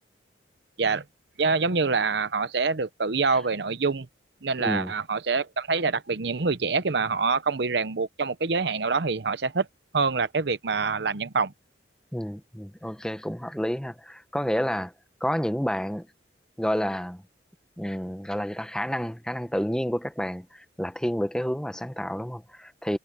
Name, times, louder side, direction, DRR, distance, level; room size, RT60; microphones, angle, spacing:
voice 1, 1.4-4.1 4.4-9.7 9.9-11.5, right 4 dB, 65° right, 0.8 m, -25 dB
voice 2, 4.6-4.9 12.1-14.9 15.2-16.1 16.6-17.2 17.8-23.0, equal, 5° left, 0.9 m, -29 dB
head